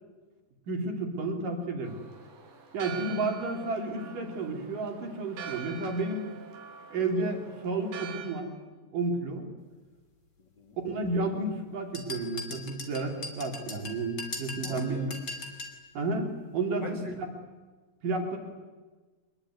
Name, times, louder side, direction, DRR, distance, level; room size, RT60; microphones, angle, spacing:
voice 1, 0.7-2.0 2.7-6.3 6.9-8.5 8.9-9.5 10.8-15.1 15.9-17.3 18.0-18.4, right 3 dB, 50° right, 3 dB, 4.8 m, -31 dB
Church bell, 1.8-8.3, right 7 dB, 80° right, 5.5 m, -44 dB
voice 2, 10.4-10.8 14.6-15.2 16.8-17.1, left 3 dB, 55° left, 4 dB, 1.2 m, -42 dB
sound 1, 11.9-15.8, left 3 dB, 30° left, 3.1 m, -40 dB
25.0 x 21.5 x 9.5 m, 1.3 s
omnidirectional pair, 5.0 m